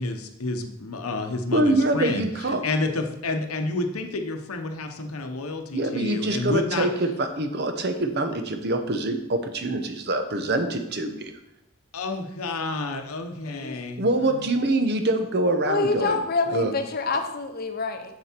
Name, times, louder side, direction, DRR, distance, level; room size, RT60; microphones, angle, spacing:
voice 1, 0.0-2.3 2.6-6.9 11.9-14.5, left 2 dB, 80° left, 5 dB, 0.9 m, -30 dB
voice 2, 1.5-2.6 5.7-11.4 14.0-16.2 16.5-16.7, right 2 dB, 50° right, 7 dB, 0.8 m, -25 dB
voice 3, 13.4-13.8 15.7-18.2, left 4 dB, 45° left, 6 dB, 0.8 m, -27 dB
7.1 x 6.8 x 4.4 m, 0.86 s
head